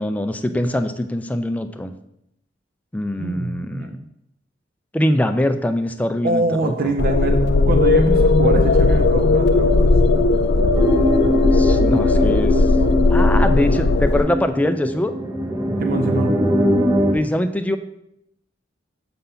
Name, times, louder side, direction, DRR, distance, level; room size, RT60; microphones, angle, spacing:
voice 1, 0.0-1.9 2.9-4.0 4.9-6.9 11.5-12.7 13.1-15.1 17.1-17.8, left 1 dB, 10° left, 7 dB, 0.4 m, -23 dB
voice 2, 3.2-4.0 6.2-9.9 15.8-16.3, right 2 dB, 50° right, 6 dB, 0.5 m, -24 dB
sound 1, 7.0-14.2, left 3 dB, 65° left, 0.5 m, -16 dB
sound 2, 10.8-17.1, equal, 20° right, 0.8 m, -21 dB
6.8 x 3.8 x 5.6 m, 0.80 s
head